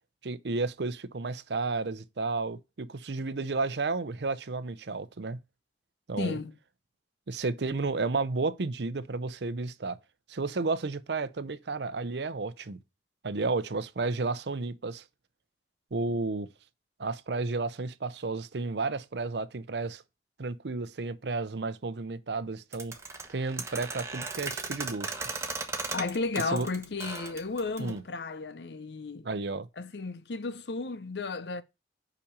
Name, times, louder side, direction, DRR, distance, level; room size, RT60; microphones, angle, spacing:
voice 1, 0.2-5.4 6.1-6.4 7.3-10.0 10.3-12.8 13.2-15.0 15.9-16.5 17.0-20.0 20.4-22.9 23.3-25.2 26.5-26.7 27.8-28.0 29.2-29.7, right 3 dB, 80° right, 0.7 m, -32 dB
voice 2, 6.2-6.5 25.9-29.3 29.8-31.6, left 3 dB, 75° left, 0.7 m, -33 dB
sound 1, 22.7-28.0, right 3 dB, 15° right, 1.1 m, -36 dB
5.7 x 5.2 x 6.7 m
head